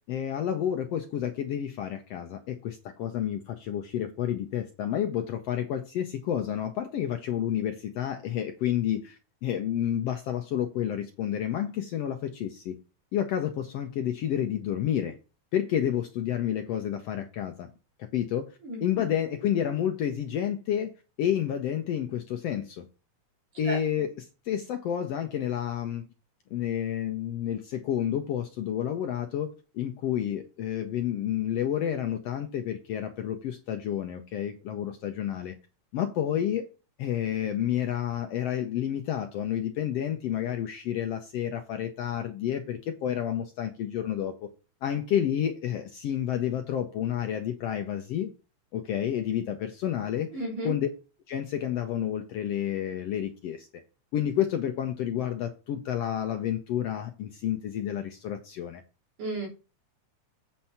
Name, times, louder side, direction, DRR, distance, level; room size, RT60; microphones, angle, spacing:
voice 1, 0.1-12.8 13.1-15.2 15.5-17.7 18.1-20.9 21.2-22.9 23.6-26.1 26.5-35.5 35.9-36.7 37.0-44.5 44.8-48.3 48.7-50.3 50.6-50.9 51.3-53.7 54.1-58.8, left 10 dB, 75° left, 1.5 m, -30 dB
voice 2, 18.6-19.0 23.7-23.8 50.3-50.7 59.2-59.5, right 1 dB, 80° right, 5.2 m, -33 dB
8.4 x 4.3 x 5.7 m
omnidirectional pair, 3.6 m